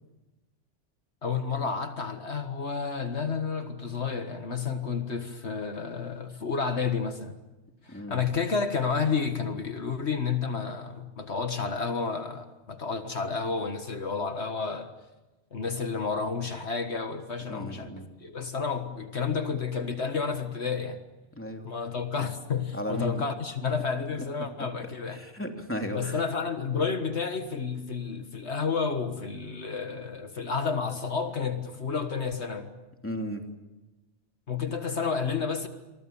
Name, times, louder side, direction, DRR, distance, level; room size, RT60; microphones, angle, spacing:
voice 1, 1.2-7.4 7.8-14.9 15.5-21.0 21.6-25.2 25.9-32.7 34.5-35.7, left 5 dB, 65° left, 7 dB, 1.9 m, -31 dB
voice 2, 7.9-8.2 17.5-18.0 21.3-21.7 22.7-23.2 25.1-26.2 33.0-33.4, equal, 10° left, 3 dB, 3.0 m, -34 dB
28.5 x 23.5 x 7.2 m, 1.1 s
omnidirectional pair, 1.2 m